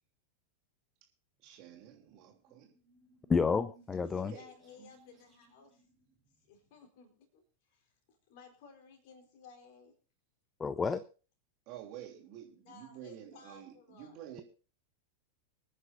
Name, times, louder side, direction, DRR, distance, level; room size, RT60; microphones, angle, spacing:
sound 1, 1.4-6.9, right 1 dB, 20° right, 5.3 m, -65 dB
voice 1, 1.4-2.7 4.3-4.5 4.8-4.9 11.7-14.4, right 11 dB, 40° right, 3.1 m, -49 dB
voice 2, 3.3-4.3 10.6-11.0, left 5 dB, 15° left, 0.5 m, -30 dB
voice 3, 4.1-5.9 6.4-9.9 12.7-14.4, left 5 dB, 50° left, 4.3 m, -57 dB
25.5 x 9.7 x 2.7 m
figure-of-eight pair, 90°, 0 cm